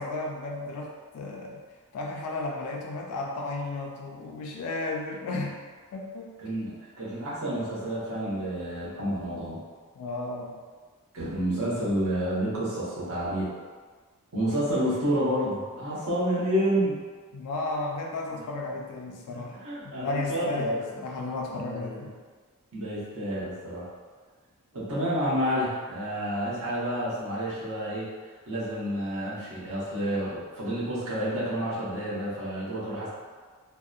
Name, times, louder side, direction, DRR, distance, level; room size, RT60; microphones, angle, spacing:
voice 1, 0.0-1.6 1.9-5.6 5.9-6.3 10.0-10.6 17.3-19.6 20.0-22.1, left 2 dB, 80° left, 3 dB, 0.3 m, -33 dB
voice 2, 7.0-9.6 11.1-13.5 14.3-17.0 18.3-18.4 19.3-20.9 21.5-22.1 22.7-23.9 24.7-28.1 28.5-33.1, equal, 75° right, -8 dB, 0.9 m, -29 dB
2.6 x 2.0 x 2.3 m, 1.5 s
head